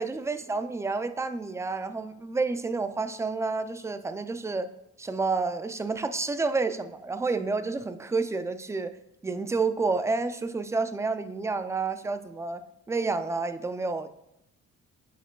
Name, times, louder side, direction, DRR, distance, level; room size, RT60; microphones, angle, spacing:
voice 1, 0.0-4.7 5.0-9.0 9.2-12.6 12.9-14.1, right 3 dB, 10° right, 10 dB, 0.4 m, -29 dB
9.9 x 4.9 x 2.3 m, 0.87 s
cardioid pair, 90°, 30 cm